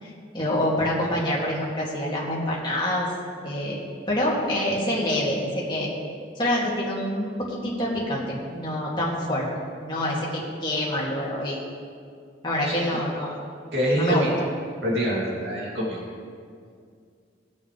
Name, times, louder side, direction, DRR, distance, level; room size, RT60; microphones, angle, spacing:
voice 1, 0.0-3.1 3.4-5.9 6.4-9.5 9.8-11.6 12.4-13.4 13.9-14.3, left 1 dB, 25° left, -5 dB, 2.3 m, -26 dB
voice 2, 12.6-13.0 13.7-14.3 14.8-16.0, equal, 65° right, -5 dB, 2.7 m, -25 dB
19.5 x 7.1 x 3.3 m, 2.2 s
head